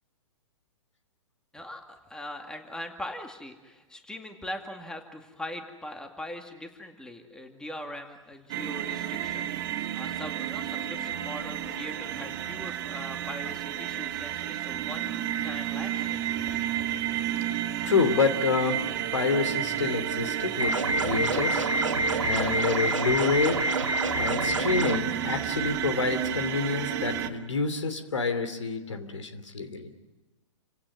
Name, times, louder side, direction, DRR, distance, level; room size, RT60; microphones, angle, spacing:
voice 1, 1.5-16.5, left 1 dB, 5° left, 5 dB, 2.2 m, -41 dB
sound 1, 8.5-27.3, right 10 dB, 45° right, 2.3 m, -31 dB
voice 2, 17.8-18.9 19.1-21.7 22.2-23.6 24.1-29.9, left 4 dB, 70° left, 8 dB, 3.0 m, -28 dB
sound 2, 20.6-25.0, right 1 dB, 85° right, 1.6 m, -27 dB
29.0 x 17.0 x 9.5 m, 1.1 s
figure-of-eight pair, 110°, 16 cm